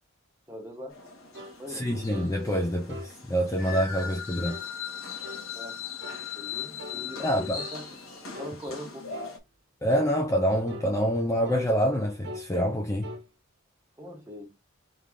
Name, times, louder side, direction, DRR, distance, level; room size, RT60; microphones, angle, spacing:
voice 1, 0.5-0.9 1.6-1.9 5.5-5.8 6.3-7.9 8.4-9.0 14.0-14.5, left 1 dB, 10° right, 1.3 m, -40 dB
sound 1, 0.9-9.4, left 6 dB, 80° left, 1.7 m, -39 dB
sound 2, 1.3-1.6 2.1-2.4 2.9-3.1 3.7-3.9 4.4-4.7 5.2-5.5 6.0-6.3 6.8-7.0 7.6-7.8 8.3-8.6 9.1-9.4 9.9-10.1 10.7-10.9 11.5-11.7 12.2-12.5 13.0-13.3, equal, 50° right, 1.3 m, -42 dB
voice 2, 1.7-4.6 7.2-7.6 9.8-13.1, equal, 15° left, 0.5 m, -26 dB
3.7 x 3.3 x 3.7 m
head